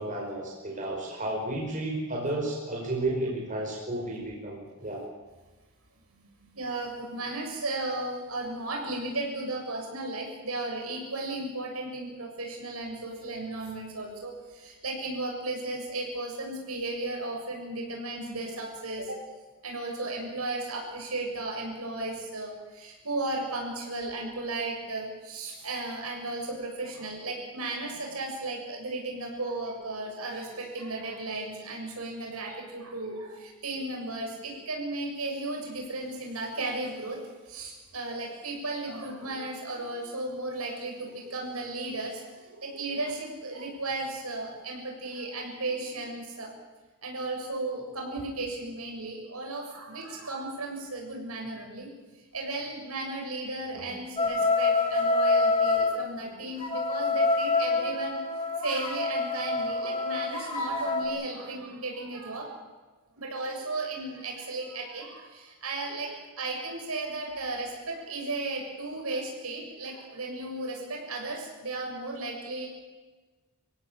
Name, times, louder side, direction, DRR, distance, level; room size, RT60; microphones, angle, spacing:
voice 1, 0.0-5.0, right 1 dB, 35° right, -1 dB, 5.4 m, -32 dB
voice 2, 6.1-19.2 19.6-37.2 37.5-46.5 47.0-51.9 52.3-62.6 63.2-72.7, right 2 dB, 80° right, 1 dB, 7.0 m, -35 dB
sound 1, 54.2-55.9 56.6-61.1, left 3 dB, 25° left, 5.9 m, -26 dB
26.0 x 16.5 x 8.8 m, 1.3 s
head